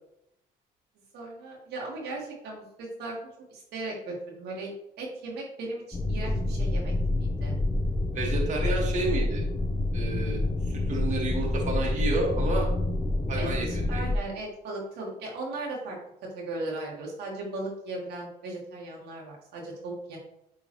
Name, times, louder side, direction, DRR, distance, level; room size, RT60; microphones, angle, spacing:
voice 1, 1.1-3.1 3.5-4.7 5.0-6.9 7.2-7.5 13.4-16.0 16.3-20.2, right 2 dB, 75° right, -2 dB, 1.7 m, -37 dB
sound 1, 5.9-14.2, left 2 dB, 10° left, 0.6 m, -27 dB
voice 2, 8.1-9.4 9.9-10.4 10.7-12.7 13.3-14.0, right 2 dB, 45° right, -1 dB, 1.7 m, -30 dB
8.7 x 3.7 x 3.0 m, 0.81 s
cardioid pair, 110°, 17 cm